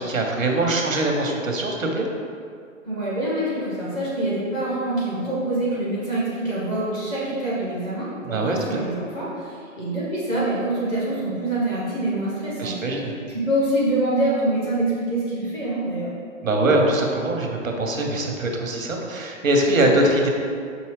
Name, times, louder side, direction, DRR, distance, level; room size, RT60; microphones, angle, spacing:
voice 1, 0.0-2.1 8.2-8.8 12.6-13.1 16.4-20.3, right 1 dB, 85° right, 1 dB, 0.8 m, -22 dB
voice 2, 2.8-12.8 13.3-16.1, right 1 dB, 10° left, -9 dB, 0.4 m, -25 dB
5.5 x 2.7 x 3.1 m, 2.2 s
figure-of-eight pair, 115°, 39 cm